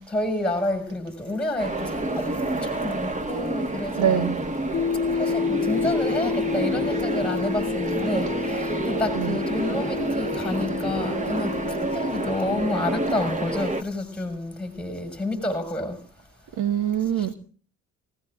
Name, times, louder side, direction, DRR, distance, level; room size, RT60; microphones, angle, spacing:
voice 1, 0.0-4.3 5.1-16.0 17.1-17.3, left 2 dB, 5° left, 5.8 m, -29 dB
sound 1, 1.6-13.8, right 2 dB, 25° right, 1.5 m, -29 dB
voice 2, 4.0-4.4 9.2-9.4 16.6-17.3, right 10 dB, 80° right, 1.8 m, -24 dB
sound 2, 4.7-13.6, left 6 dB, 40° left, 0.8 m, -30 dB
28.5 x 17.0 x 2.5 m
cardioid pair, 90°, 30 cm